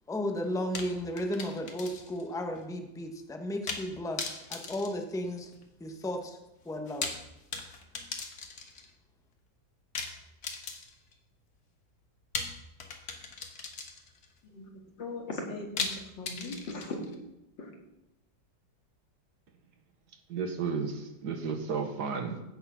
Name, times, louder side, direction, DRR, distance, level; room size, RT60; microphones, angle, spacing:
voice 1, 0.1-5.5 5.8-6.4 6.6-7.1, left 1 dB, ahead, 4 dB, 0.9 m, -34 dB
sound 1, 0.7-2.3 2.6-2.7 3.7-3.9 4.2-5.7 6.8-8.9 9.9-11.1 12.3-14.3 15.8-17.2, left 4 dB, 55° left, 1.8 m, -38 dB
voice 2, 15.0-17.0 17.6-17.7, left 2 dB, 80° left, 1 dB, 2.9 m, -39 dB
voice 3, 20.3-22.4, right 5 dB, 65° right, 6 dB, 1.7 m, -33 dB
15.5 x 6.7 x 5.7 m, 0.96 s
omnidirectional pair, 2.0 m